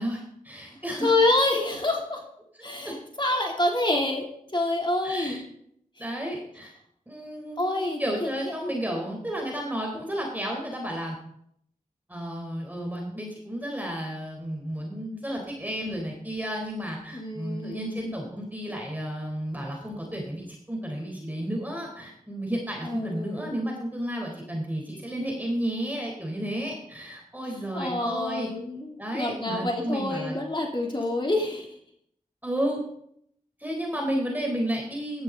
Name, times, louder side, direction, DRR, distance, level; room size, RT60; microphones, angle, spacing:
voice 1, 0.0-1.1 2.8-2.9 5.0-5.4 6.0-6.7 7.1-11.2 12.1-28.5 29.0-30.4 32.4-32.8 33.6-35.2, equal, 10° right, 0 dB, 3.9 m, -32 dB
voice 2, 1.0-2.2 2.6-5.4 7.6-8.3 8.6-8.7 17.1-18.1 22.8-23.6 27.7-31.7, left 2 dB, 35° left, -1 dB, 3.1 m, -27 dB
15.5 x 12.5 x 4.0 m, 0.71 s
cardioid pair, 45°, 14 cm